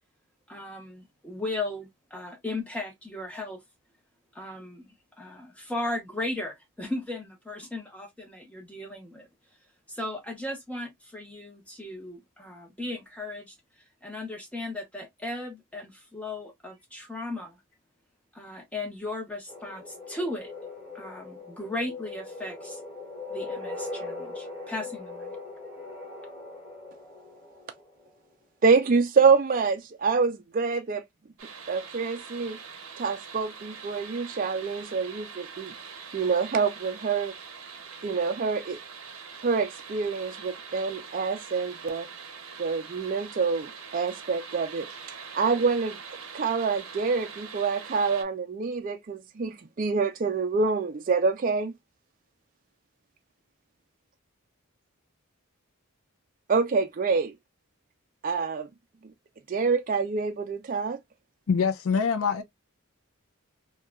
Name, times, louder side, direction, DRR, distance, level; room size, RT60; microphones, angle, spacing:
voice 1, 0.5-3.6 4.3-4.9 5.2-9.3 9.9-13.5 14.0-17.6 18.3-20.5 20.9-22.8 23.3-25.3, left 2 dB, 5° left, 0.7 m, -36 dB
sound 1, 19.5-28.1, left 3 dB, 25° left, 1.2 m, -40 dB
voice 2, 28.6-31.0 31.7-32.6 33.0-35.7 36.1-37.3 38.0-38.8 39.4-42.1 42.6-44.9 45.3-46.0 46.3-51.7 56.5-57.3 58.2-58.7 59.5-61.0, right 5 dB, 40° right, 0.4 m, -26 dB
sound 2, 31.4-48.2, right 6 dB, 70° right, 0.7 m, -43 dB
voice 3, 61.5-62.4, left 6 dB, 70° left, 0.4 m, -24 dB
2.9 x 2.2 x 2.2 m
head